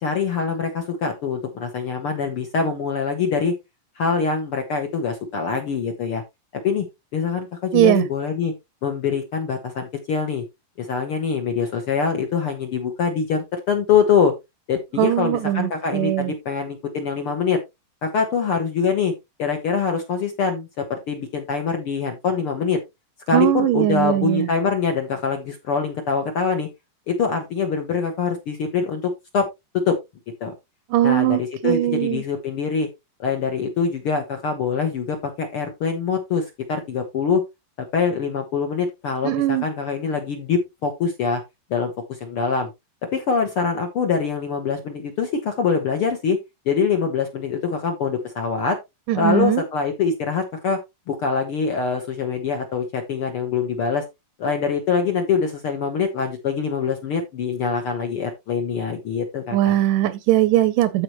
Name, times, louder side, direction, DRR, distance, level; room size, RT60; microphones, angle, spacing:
voice 1, 0.0-3.5 4.0-6.2 6.6-6.8 7.1-8.5 8.8-10.4 10.8-14.3 14.7-17.6 18.0-19.1 19.4-22.8 23.3-26.7 27.1-29.5 29.9-30.0 30.4-30.5 31.0-32.9 33.2-37.4 37.9-41.4 41.7-42.7 43.1-46.4 46.6-48.8 49.1-50.8 51.1-54.0 54.4-59.8, left 5 dB, 60° left, 1.5 m, -24 dB
voice 2, 7.7-8.1 15.0-16.3 23.3-24.5 30.9-32.2 39.2-39.7 49.1-49.6 59.5-61.0, right 14 dB, 75° right, 2.0 m, -20 dB
14.0 x 4.9 x 3.0 m
omnidirectional pair, 4.1 m